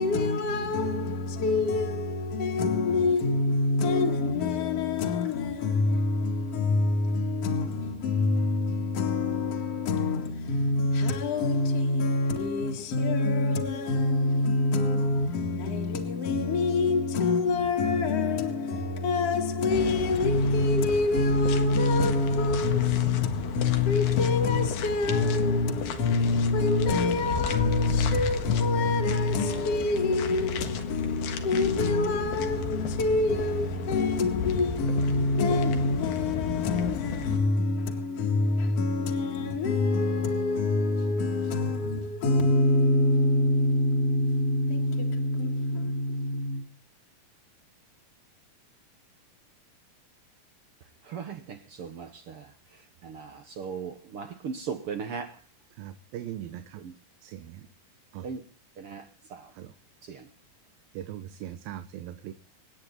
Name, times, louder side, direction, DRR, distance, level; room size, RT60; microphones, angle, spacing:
voice 1, 0.0-46.6, left 3 dB, 50° left, 2.7 m, -25 dB
sound 1, 19.7-37.4, left 5 dB, 80° left, 3.4 m, -34 dB
voice 2, 51.8-52.3 53.0-53.3 53.6-55.3 58.2-58.4 58.8-59.0 60.1-60.2, right 6 dB, 60° right, 1.6 m, -36 dB
voice 3, 55.8-56.8 57.2-57.7 58.1-58.3 59.6-59.7 60.9-62.3, right 11 dB, 90° right, 2.8 m, -40 dB
27.0 x 9.5 x 4.0 m
omnidirectional pair, 4.0 m